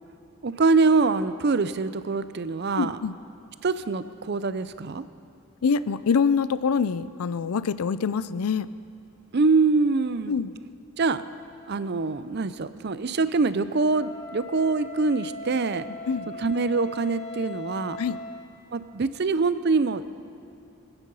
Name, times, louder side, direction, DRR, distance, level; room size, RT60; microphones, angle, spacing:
voice 1, 0.4-3.0 3.6-5.0 9.3-10.4 11.0-11.2 11.7-15.9 16.4-18.0 18.7-20.3, right 3 dB, 50° right, 13 dB, 0.5 m, -24 dB
voice 2, 2.8-3.1 5.6-8.7 10.3-10.5 16.1-16.3 18.0-18.2, left 5 dB, 85° left, 15 dB, 0.5 m, -25 dB
Wind instrument woodwind instrument, 13.9-18.5, left 2 dB, 40° left, 4.7 m, -39 dB
25.0 x 9.1 x 5.5 m, 2.7 s
head